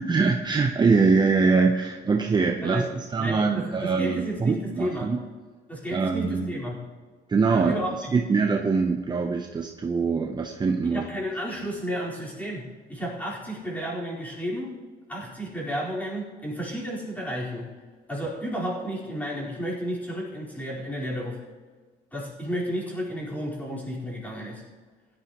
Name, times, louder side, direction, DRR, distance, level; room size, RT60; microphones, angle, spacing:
voice 1, 0.0-5.2 5.9-6.6 7.3-7.8 8.1-11.0, right 4 dB, 25° right, 3 dB, 0.8 m, -23 dB
voice 2, 3.2-5.1 5.7-6.8 7.5-8.1 10.8-14.7 15.1-17.7 18.1-21.4 22.1-24.6, equal, 10° left, -5 dB, 4.3 m, -32 dB
16.5 x 11.0 x 3.0 m, 1.4 s
cardioid pair, 110°, 17 cm